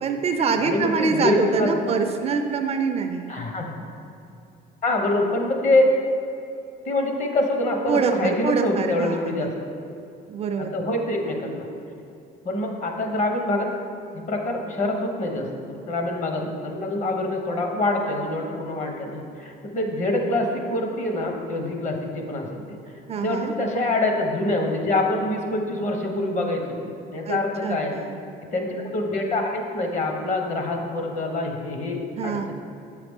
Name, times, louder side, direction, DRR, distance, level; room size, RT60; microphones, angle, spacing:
voice 1, 0.0-3.3 7.9-9.6 10.3-10.8 23.1-23.5 27.3-28.2 32.2-32.5, right 5 dB, 35° right, 6 dB, 0.4 m, -25 dB
voice 2, 0.6-2.0 3.3-3.8 4.8-5.9 6.9-9.5 10.6-11.7 12.4-13.7 14.1-22.8 23.2-26.8 27.1-28.0 28.5-32.5, left 2 dB, 40° left, 2 dB, 0.9 m, -25 dB
7.5 x 4.9 x 3.6 m, 2.6 s
cardioid pair, 120°, 18 cm